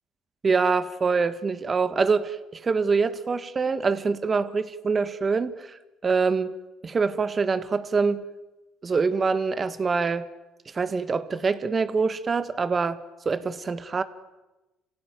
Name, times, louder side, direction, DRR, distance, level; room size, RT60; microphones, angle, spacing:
voice 1, 0.4-6.5 6.8-8.2 8.8-10.3 10.6-13.0 13.2-14.0, right 4 dB, 30° right, 12 dB, 1.6 m, -25 dB
26.5 x 16.5 x 9.4 m, 1.1 s
supercardioid pair, 90°, 0 cm